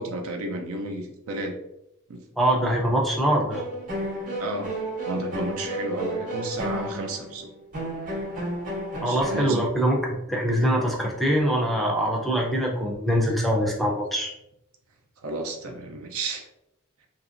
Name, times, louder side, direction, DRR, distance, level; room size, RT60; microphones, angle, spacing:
voice 1, 0.0-1.6 2.1-2.2 4.4-4.7 5.0-7.5 9.1-9.6 13.8-13.9 15.2-16.4, right 2 dB, 75° right, 3 dB, 0.5 m, -32 dB
voice 2, 2.4-3.6 9.0-10.0 10.3-14.3, equal, ahead, -1 dB, 0.4 m, -23 dB
sound 1, 3.5-9.4, equal, 40° right, 0.8 m, -32 dB
2.9 x 2.6 x 2.4 m, 0.85 s
head